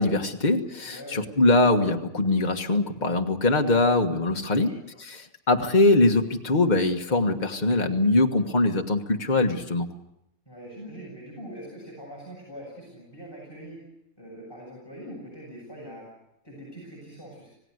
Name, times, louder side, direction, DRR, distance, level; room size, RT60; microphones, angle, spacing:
voice 1, 0.0-4.7 5.0-5.2 5.5-9.9, left 2 dB, 30° left, 3 dB, 1.7 m, -22 dB
voice 2, 0.9-1.2 4.4-4.8 10.5-13.8 14.2-16.1 16.4-17.5, equal, 15° left, -4 dB, 7.4 m, -42 dB
27.5 x 18.0 x 8.0 m, 0.85 s
omnidirectional pair, 1.5 m